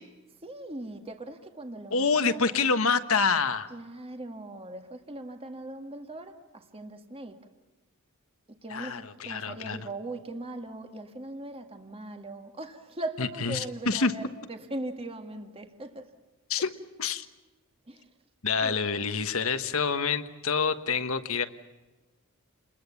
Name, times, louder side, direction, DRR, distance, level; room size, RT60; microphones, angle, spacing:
voice 1, 0.4-2.8 3.7-7.4 8.6-14.2 14.5-16.1 16.6-16.7 17.9-18.1 18.6-18.8, right 2 dB, 25° right, 6 dB, 1.8 m, -40 dB
voice 2, 1.9-3.7 8.7-9.8 13.2-14.1 16.5-16.7 17.0-17.3 18.4-21.5, left 5 dB, 65° left, 9 dB, 1.4 m, -27 dB
29.5 x 22.0 x 7.2 m, 1.2 s
head